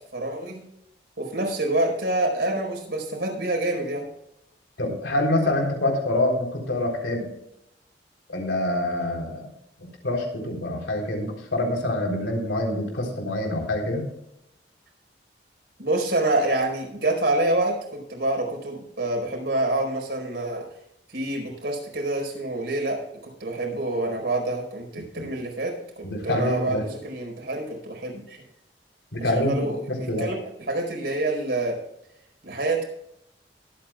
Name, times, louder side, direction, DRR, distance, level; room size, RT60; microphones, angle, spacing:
voice 1, 0.1-0.6 1.2-4.1 15.8-20.7 21.1-28.4 29.2-31.8 32.4-32.8, right 2 dB, 70° right, 1 dB, 4.7 m, -27 dB
voice 2, 4.8-7.2 8.3-9.5 10.0-14.0 25.2-25.3 26.0-26.8 29.1-29.6 29.9-30.3, left 1 dB, 85° left, 1 dB, 3.7 m, -26 dB
22.0 x 9.0 x 2.4 m, 0.81 s
head